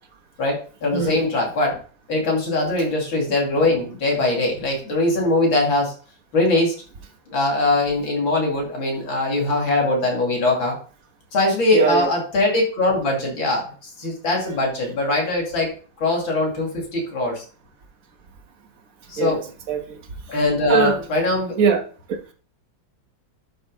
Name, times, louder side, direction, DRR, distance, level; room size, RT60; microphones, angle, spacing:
voice 1, 0.4-1.8 2.1-5.9 6.3-6.7 7.3-10.8 11.3-13.7 14.0-15.7 16.0-17.4 19.1-19.4 20.3-21.5, left 2 dB, 75° left, 3.4 m, -21 dB
voice 2, 11.7-12.1 19.2-19.4 19.7-20.0 20.7-21.0 21.6-21.8, right 6 dB, 50° right, 1.5 m, -20 dB
11.5 x 4.2 x 4.0 m
omnidirectional pair, 2.2 m